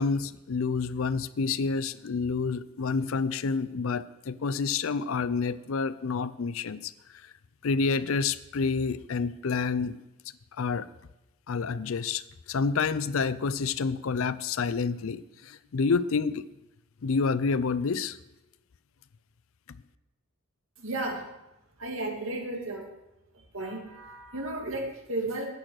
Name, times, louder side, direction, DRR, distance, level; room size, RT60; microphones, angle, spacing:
voice 1, 0.0-6.9 7.2-7.3 7.6-10.0 10.6-10.9 11.5-12.2 12.5-16.5 17.0-18.2, left 4 dB, 65° left, 16 dB, 0.5 m, -28 dB
voice 2, 20.8-21.3 21.8-22.9 23.5-25.5, right 2 dB, 65° right, 1 dB, 2.3 m, -33 dB
10.0 x 9.0 x 6.4 m, 0.96 s
head